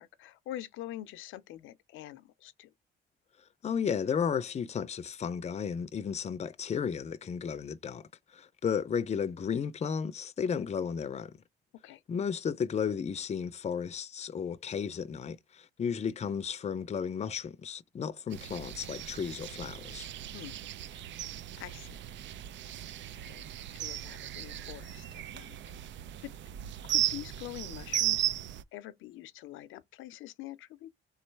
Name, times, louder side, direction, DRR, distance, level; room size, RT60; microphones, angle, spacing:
voice 1, 0.0-2.7 11.8-12.0 20.3-20.6 20.9-21.1 21.6-22.0 23.1-23.4 23.7-25.6 25.9-26.3 26.8-28.4 28.7-30.9, left 14 dB, 85° left, 0.5 m, -45 dB
voice 2, 3.6-11.3 12.1-20.1, left 7 dB, 35° left, 0.5 m, -34 dB
sound 1, 18.3-28.6, right 12 dB, 65° right, 0.5 m, -36 dB
3.7 x 3.1 x 4.5 m
cardioid pair, 90°, 20 cm